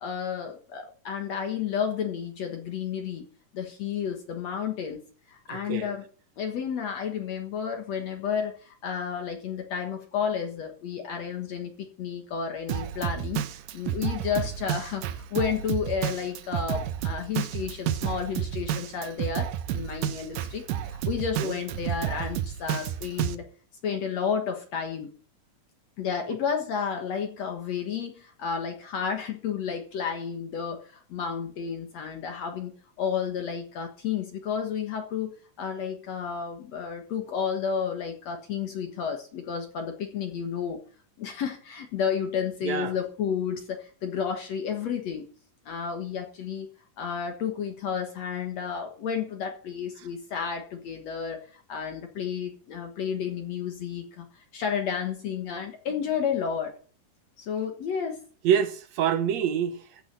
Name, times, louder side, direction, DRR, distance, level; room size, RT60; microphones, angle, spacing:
voice 1, 0.0-3.2 3.5-5.0 5.3-6.1 6.4-23.4 23.8-25.1 26.0-35.3 35.6-40.8 41.2-45.3 45.7-46.7 47.0-56.7 57.4-58.2, left 7 dB, 60° left, 2.4 m, -31 dB
voice 2, 5.5-5.9 21.4-21.6 26.3-26.4 42.6-42.9 58.4-60.0, right 8 dB, 70° right, 1.9 m, -27 dB
Drum kit, 12.7-23.3, right 11 dB, 90° right, 2.6 m, -31 dB
14.5 x 6.2 x 9.7 m
omnidirectional pair, 3.7 m